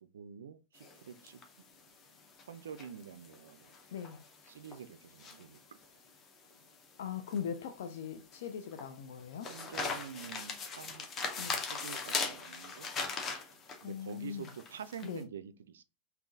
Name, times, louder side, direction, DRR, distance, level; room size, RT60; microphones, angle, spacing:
voice 1, 0.0-1.6 2.5-3.7 4.5-5.8 9.5-11.1 11.6-12.9 13.8-15.8, right 7 dB, 65° right, 0.3 m, -47 dB
sound 1, 0.8-15.2, left 4 dB, 30° left, 0.8 m, -41 dB
voice 2, 7.0-9.5 11.4-11.6 13.8-14.5 15.0-15.2, left 7 dB, 55° left, 0.4 m, -40 dB
3.6 x 2.8 x 2.5 m
figure-of-eight pair, 90°, 0 cm